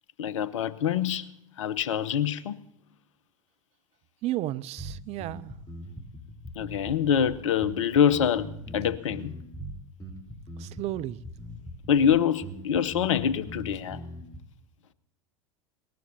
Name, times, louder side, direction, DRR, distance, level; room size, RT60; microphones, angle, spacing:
voice 1, 0.2-1.3 1.6-2.6 6.6-9.4 11.9-14.0, left 8 dB, 70° left, 0.8 m, -25 dB
voice 2, 4.2-5.5 10.6-11.2, right 15 dB, 40° right, 0.5 m, -33 dB
sound 1, 4.8-14.4, equal, 20° left, 3.6 m, -41 dB
20.5 x 18.5 x 2.7 m
figure-of-eight pair, 80°, 17 cm